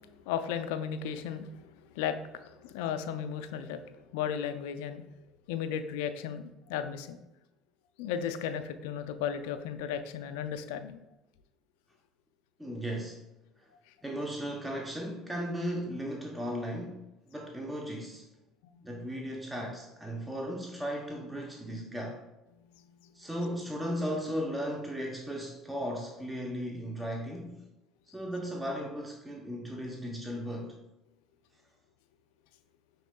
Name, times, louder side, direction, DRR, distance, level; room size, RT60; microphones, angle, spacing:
voice 1, 0.3-5.0 5.5-7.2 8.0-11.0, left 8 dB, 80° left, 9 dB, 0.4 m, -35 dB
voice 2, 12.6-13.2 14.0-17.0 17.3-18.2 18.8-22.2 23.1-27.6 28.1-30.8, equal, 10° right, -1 dB, 0.7 m, -36 dB
6.0 x 3.5 x 2.2 m, 0.96 s
hypercardioid pair, 75°, 0 cm